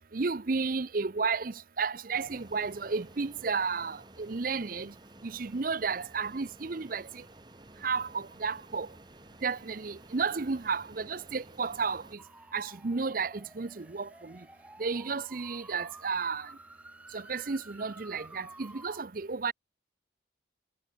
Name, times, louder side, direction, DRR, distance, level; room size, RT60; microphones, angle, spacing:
voice 1, 0.1-4.9 5.2-7.0 7.8-8.9 9.4-12.0 12.5-14.3 14.8-16.5 17.1-19.5, right 4 dB, 45° right, 0.6 m, -32 dB
Fixed-wing aircraft airplane, 2.1-12.1, right 1 dB, 20° right, 3.4 m, -54 dB
sound 1, 12.2-19.0, right 1 dB, 5° right, 4.6 m, -52 dB
head